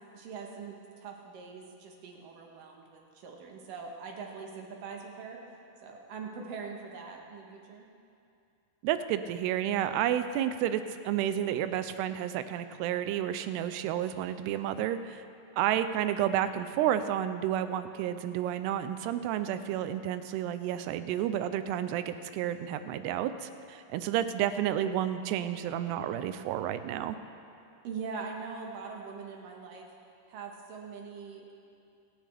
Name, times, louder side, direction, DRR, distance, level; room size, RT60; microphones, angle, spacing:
voice 1, 0.1-5.4 5.8-7.9 27.8-29.9 30.3-31.4, right 5 dB, 65° right, 1 dB, 2.5 m, -42 dB
voice 2, 8.8-15.2 15.6-27.2, right 11 dB, 85° right, 11 dB, 2.7 m, -31 dB
24.5 x 10.0 x 3.4 m, 2.6 s
omnidirectional pair, 4.7 m